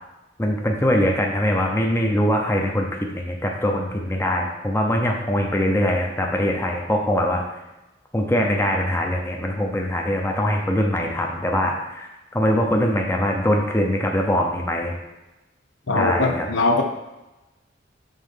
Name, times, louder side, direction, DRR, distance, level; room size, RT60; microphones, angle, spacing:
voice 1, 0.4-2.9 3.1-7.4 8.1-15.0 15.9-16.5, equal, 15° left, 1 dB, 0.7 m, -22 dB
voice 2, 15.9-16.8, left 3 dB, 80° left, 4 dB, 0.8 m, -21 dB
5.6 x 3.8 x 5.5 m, 1.0 s
head